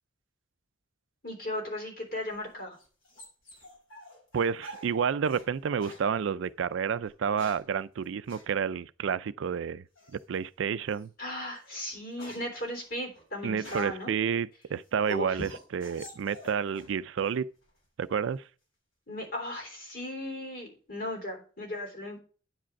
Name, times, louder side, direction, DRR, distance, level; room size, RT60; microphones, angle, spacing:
voice 1, 1.2-2.8 11.2-14.1 15.1-15.4 19.1-22.2, left 1 dB, 45° left, 3.5 m, -36 dB
sound 1, 2.2-5.5 5.8-6.1 7.0-7.7 8.3-8.5 10.0-10.4 10.9-11.1 11.5-14.1 14.6-17.0 17.2-17.8, equal, 90° left, 5.3 m, -49 dB
voice 2, 4.3-9.8 10.1-11.1 13.4-17.5 18.0-18.4, right 7 dB, 70° right, 0.4 m, -30 dB
9.3 x 5.1 x 5.8 m
head